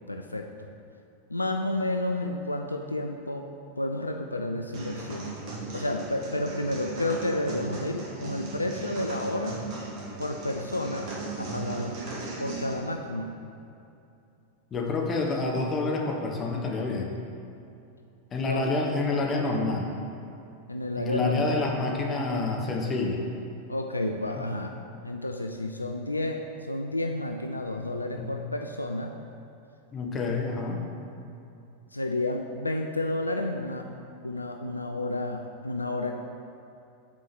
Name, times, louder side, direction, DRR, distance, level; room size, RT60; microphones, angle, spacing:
voice 1, 0.1-0.7 1.3-3.5 3.8-5.3 5.7-9.6 10.2-11.1 11.4-12.0 12.4-13.4 18.4-18.7 20.7-21.6 23.7-24.7 25.0-29.1 31.9-33.9 34.2-36.1, left 1 dB, 85° left, 4 dB, 0.3 m, -31 dB
sound 1, 4.7-12.7, right 3 dB, 45° right, 1.5 m, -37 dB
voice 2, 14.7-17.2 18.3-19.9 21.0-23.2 28.2-28.3 29.9-30.8, left 3 dB, 25° left, 0 dB, 1.0 m, -28 dB
6.0 x 4.6 x 5.9 m, 2.7 s
figure-of-eight pair, 90°, 0 cm